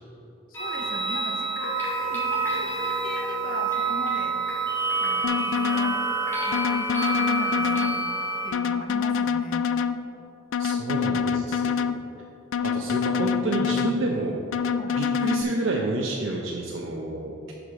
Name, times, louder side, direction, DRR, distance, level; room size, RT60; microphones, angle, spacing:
voice 1, 0.5-4.4 5.0-6.0 6.5-8.1 8.4-9.7 14.7-15.0, left 2 dB, 45° left, 4 dB, 0.7 m, -38 dB
sound 1, 0.5-8.5, right 3 dB, 10° left, 1.3 m, -27 dB
sound 2, 5.2-6.0 6.5-8.0 8.5-10.0 10.5-12.0 12.5-14.0 14.5-15.4, left 6 dB, 75° left, 0.3 m, -26 dB
voice 2, 10.6-11.8 12.6-14.4 15.0-17.5, right 2 dB, 80° right, -2 dB, 0.7 m, -29 dB
11.0 x 4.9 x 3.7 m, 2.8 s
head